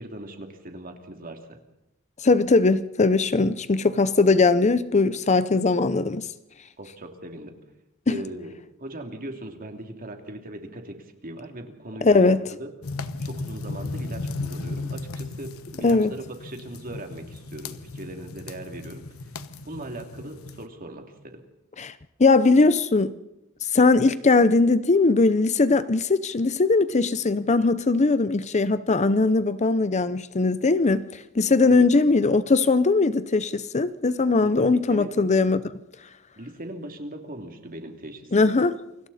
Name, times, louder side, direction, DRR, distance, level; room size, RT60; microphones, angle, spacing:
voice 1, 0.0-1.4 6.8-7.5 8.1-8.5 8.8-12.7 13.2-19.0 19.6-21.4 31.7-31.8 34.4-35.1 36.4-38.5, right 1 dB, 40° right, 2.9 m, -39 dB
voice 2, 2.2-6.3 8.1-8.2 12.0-12.4 15.8-16.1 21.8-21.9 22.2-23.1 23.7-35.6 38.3-38.7, left 3 dB, 35° left, 0.7 m, -20 dB
sound 1, 12.8-20.7, left 3 dB, 75° left, 1.2 m, -36 dB
29.0 x 24.5 x 4.2 m
head